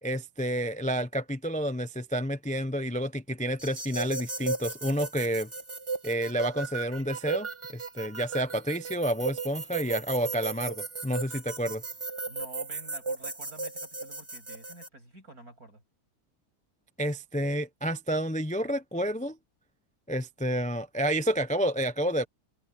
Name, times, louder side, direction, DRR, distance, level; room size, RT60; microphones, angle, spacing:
voice 1, 0.0-5.5 6.0-11.8 17.0-19.4 20.1-22.2, equal, 10° left, 0.4 m, -30 dB
sound 1, 3.6-14.9, right 4 dB, 20° right, 1.3 m, -36 dB
voice 2, 12.3-15.8, right 2 dB, 60° right, 8.4 m, -49 dB
omnidirectional pair, 1.8 m